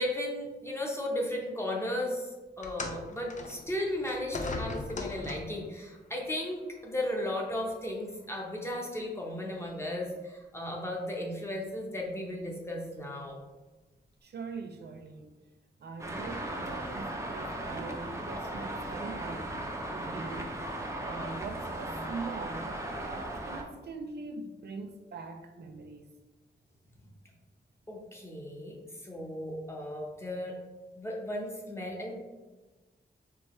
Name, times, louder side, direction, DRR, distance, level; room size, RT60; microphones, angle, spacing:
voice 1, 0.0-2.3 2.6-13.4 27.9-30.6 30.9-32.1, left 1 dB, 15° left, -1 dB, 0.8 m, -35 dB
sound 1, 2.6-5.7 6.7-6.8 7.7-7.8, left 3 dB, 40° left, 0.5 m, -39 dB
voice 2, 14.2-15.4 15.8-19.4 19.9-20.5 21.0-26.1, right 4 dB, 65° right, 5 dB, 0.4 m, -42 dB
Traffic noise roadway noise, 16.0-23.6, right 1 dB, 15° right, 0.6 m, -37 dB
4.6 x 3.2 x 3.1 m, 1.2 s
wide cardioid pair, 125°, 19 cm